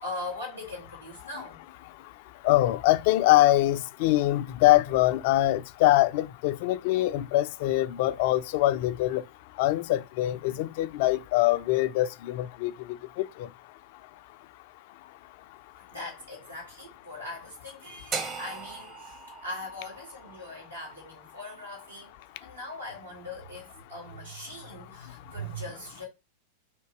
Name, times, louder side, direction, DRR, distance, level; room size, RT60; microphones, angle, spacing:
voice 1, 0.0-1.6 15.9-22.1 22.4-26.1, left 1 dB, 80° right, 2.6 m, -40 dB
voice 2, 2.4-9.2 9.6-12.7 13.2-13.3, left 16 dB, 50° left, 0.4 m, -23 dB
sound 1, 18.1-22.2, right 4 dB, 30° right, 0.9 m, -39 dB
3.7 x 2.8 x 4.7 m
figure-of-eight pair, 90°, 0 cm